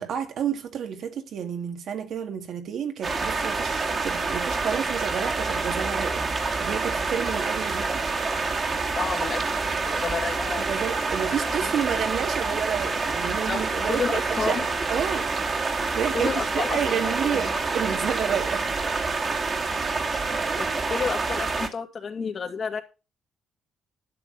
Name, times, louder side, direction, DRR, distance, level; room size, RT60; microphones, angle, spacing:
voice 1, 0.0-8.1 10.6-14.6 14.9-15.3 15.7-18.7, right 8 dB, 70° right, 1.9 m, -30 dB
sound 1, 3.0-21.7, right 4 dB, 40° right, 2.0 m, -27 dB
voice 2, 8.9-10.8 11.6-11.7 13.5-14.7 16.1-17.5 20.6-22.8, left 5 dB, 45° left, 2.3 m, -31 dB
11.5 x 7.2 x 5.6 m
cardioid pair, 90°, 0 cm